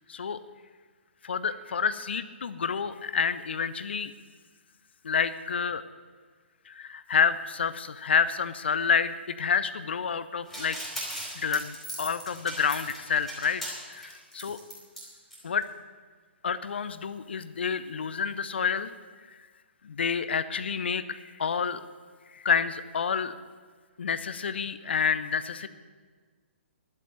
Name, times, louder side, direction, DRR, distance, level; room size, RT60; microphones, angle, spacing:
voice 1, 0.1-0.4 1.2-4.1 5.0-5.8 6.7-10.8 11.4-13.6 13.9-14.6 15.4-15.6 16.4-18.9 19.8-21.8 22.3-23.3 24.0-25.7, left 6 dB, 60° left, 14 dB, 0.7 m, -28 dB
sound 1, 10.5-15.0 15.3-15.4 15.6-15.7, equal, ahead, 3.9 m, -38 dB
11.0 x 8.5 x 9.3 m, 1.5 s
figure-of-eight pair, 130°, 7 cm